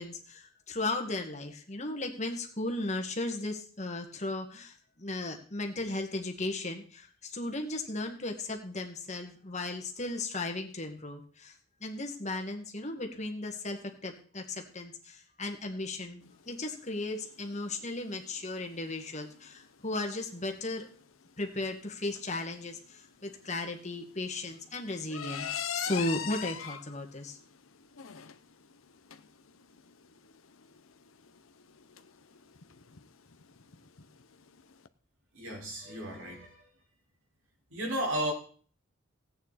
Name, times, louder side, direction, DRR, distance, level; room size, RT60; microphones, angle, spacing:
voice 1, 0.0-11.5 11.8-20.9 21.4-27.4, left 2 dB, 35° left, 1.9 m, -36 dB
sound 1, 16.2-34.9, left 8 dB, 85° left, 0.9 m, -44 dB
voice 2, 35.3-36.6 37.7-38.3, right 1 dB, 85° right, 5.0 m, -34 dB
17.0 x 9.1 x 4.2 m
head